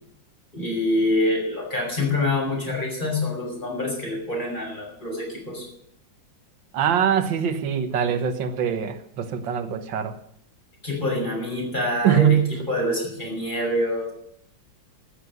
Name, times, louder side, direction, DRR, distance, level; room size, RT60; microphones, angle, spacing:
voice 1, 0.5-5.6 10.8-12.4 12.7-14.1, left 1 dB, 25° left, -2 dB, 6.2 m, -26 dB
voice 2, 6.7-10.2 12.0-12.6, right 8 dB, 75° right, 10 dB, 1.9 m, -22 dB
13.0 x 8.6 x 9.4 m, 0.72 s
omnidirectional pair, 2.1 m